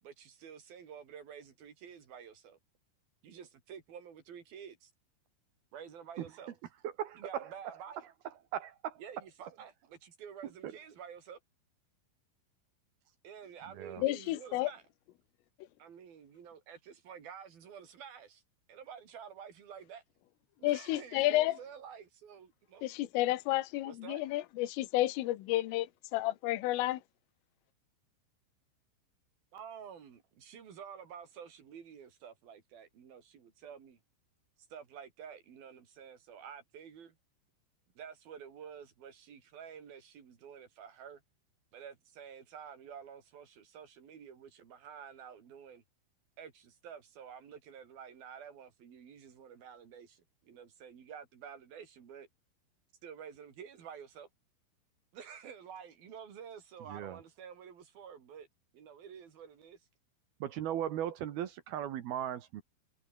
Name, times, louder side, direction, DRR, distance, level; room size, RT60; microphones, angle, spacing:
voice 1, 0.0-2.6 3.2-4.9 5.7-6.6 7.2-8.1 9.0-11.4 13.2-14.8 15.8-18.4 18.7-20.0 20.6-22.8 23.8-24.2 29.5-34.0 34.7-37.2 38.0-41.2 41.7-45.8 46.4-52.3 53.0-54.3 55.1-58.5 58.7-59.8, right 7 dB, 50° right, 5.0 m, -50 dB
voice 2, 6.8-7.5 8.5-9.0 10.6-10.7 13.8-14.0 56.9-57.2 60.4-62.6, right 10 dB, 65° right, 2.8 m, -37 dB
voice 3, 14.0-14.7 20.6-21.6 22.8-27.0, left 16 dB, 80° left, 3.9 m, -31 dB
omnidirectional pair, 5.8 m